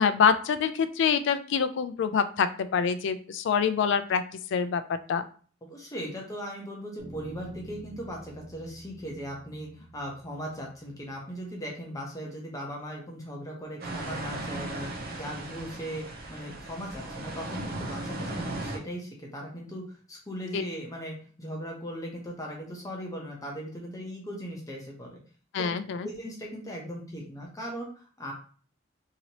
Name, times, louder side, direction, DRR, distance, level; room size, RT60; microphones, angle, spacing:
voice 1, 0.0-4.2 4.5-4.8 5.1-5.2 20.5-20.6 25.5-26.1, left 6 dB, 65° left, 12 dB, 0.3 m, -25 dB
voice 2, 5.7-16.0 16.3-25.2 25.6-25.7 26.0-28.3, equal, 20° left, -1 dB, 0.7 m, -38 dB
Bass guitar, 7.0-11.4, right 1 dB, 25° right, 1.2 m, -48 dB
sound 1, 13.8-18.8, right 2 dB, 50° right, 0.6 m, -37 dB
2.9 x 2.8 x 2.8 m, 0.42 s
head